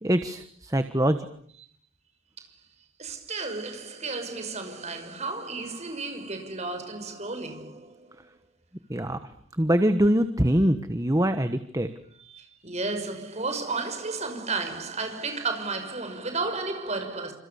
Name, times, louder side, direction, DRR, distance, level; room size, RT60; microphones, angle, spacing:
voice 1, 0.0-1.2 8.9-9.2 9.6-11.9, equal, 15° right, 1.2 m, -23 dB
voice 2, 3.0-8.1 12.2-17.3, right 3 dB, 30° right, 5.9 m, -33 dB
28.5 x 27.5 x 7.1 m
head